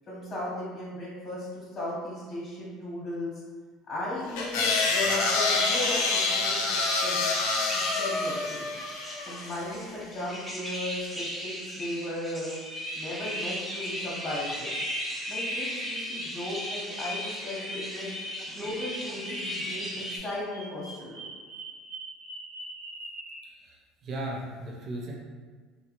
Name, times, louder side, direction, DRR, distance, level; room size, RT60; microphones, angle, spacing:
voice 1, 0.1-3.3 3.9-6.6 7.0-7.2 8.0-8.7 9.2-12.5 12.9-14.7 15.3-18.1 18.4-21.3, left 1 dB, 30° left, -7 dB, 1.0 m, -36 dB
sound 1, 4.4-9.7, left 3 dB, 85° left, 0.5 m, -27 dB
sound 2, 5.2-20.2, equal, 5° right, 0.7 m, -36 dB
Bird vocalization bird call bird song, 19.7-23.4, right 2 dB, 90° right, 1.0 m, -43 dB
voice 2, 23.4-25.1, right 1 dB, 40° right, -2 dB, 0.5 m, -37 dB
2.7 x 2.2 x 2.9 m, 1.5 s
supercardioid pair, 115°, 0 cm